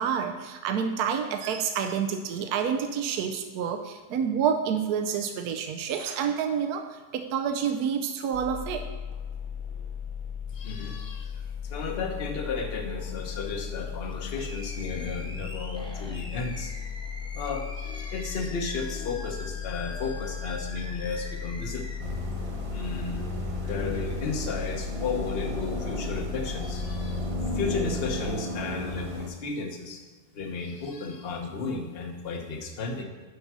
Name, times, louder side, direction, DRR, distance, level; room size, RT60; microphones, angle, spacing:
voice 1, 0.0-8.9, right 7 dB, 75° right, 6 dB, 1.1 m, -28 dB
sound 1, 8.3-28.2, left 7 dB, 70° left, 1.2 m, -36 dB
voice 2, 10.5-16.7 17.3-21.9 22.7-23.3 23.6-27.2 27.5-30.0 30.3-33.0, left 4 dB, 40° left, 3 dB, 1.1 m, -34 dB
Animal, 14.0-22.0, equal, 5° left, 0.5 m, -44 dB
sound 2, 22.0-29.3, equal, 25° right, 0.9 m, -34 dB
8.1 x 5.4 x 6.1 m, 1.3 s
omnidirectional pair, 1.7 m